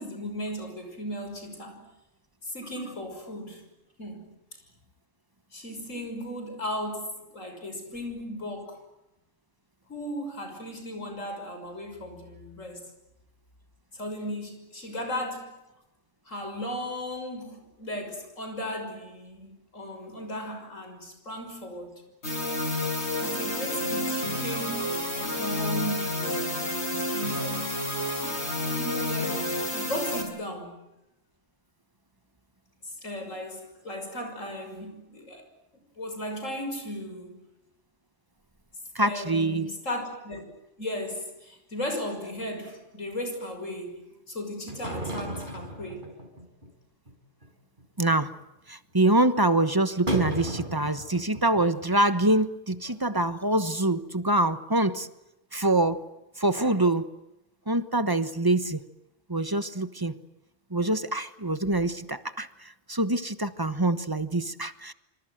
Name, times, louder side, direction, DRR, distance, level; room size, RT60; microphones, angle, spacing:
voice 1, 0.0-1.9 2.4-3.6 4.0-4.3 5.5-8.8 9.9-12.8 13.9-15.6 16.3-21.9 23.2-27.7 28.8-30.8 32.8-35.4 36.0-37.4 39.0-40.4 40.8-46.1, equal, 90° left, 6.6 m, -36 dB
sound 1, 22.2-30.2, left 1 dB, 60° left, 6.4 m, -30 dB
voice 2, 38.9-39.7 48.0-48.3 48.7-55.1 55.5-56.0 56.4-57.1 57.7-58.8 59.3-60.2 60.7-64.9, right 2 dB, 20° right, 1.1 m, -25 dB
sound 2, 44.7-46.7 47.1-47.2 47.4-47.5 47.8-48.1 48.4-48.5 50.1-51.9 52.2-52.3 52.7-52.8 53.2-53.3, equal, 40° right, 5.1 m, -34 dB
26.5 x 26.0 x 7.9 m
omnidirectional pair, 1.3 m